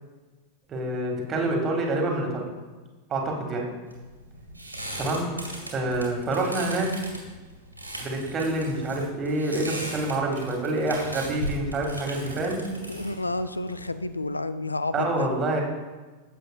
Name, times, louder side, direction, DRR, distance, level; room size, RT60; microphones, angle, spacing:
voice 1, 0.7-2.5 3.1-3.7 5.0-5.3 5.7-6.9 8.0-12.6 14.9-15.6, right 2 dB, 25° right, 1 dB, 1.8 m, -27 dB
sound 1, 3.9-14.3, right 1 dB, 85° right, 2.3 m, -38 dB
voice 2, 12.9-15.3, left 2 dB, 80° left, 13 dB, 0.3 m, -30 dB
15.5 x 7.6 x 2.3 m, 1.3 s
figure-of-eight pair, 90°, 0 cm